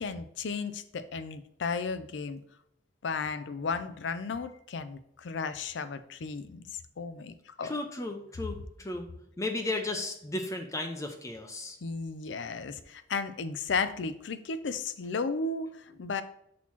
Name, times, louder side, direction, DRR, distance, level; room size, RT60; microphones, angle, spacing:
voice 1, 0.0-2.4 3.0-7.8 11.8-16.2, left 4 dB, 75° left, 12 dB, 0.5 m, -34 dB
voice 2, 7.6-9.1 9.4-11.8, left 2 dB, 15° left, 4 dB, 0.6 m, -34 dB
6.2 x 3.0 x 5.6 m, 0.75 s
head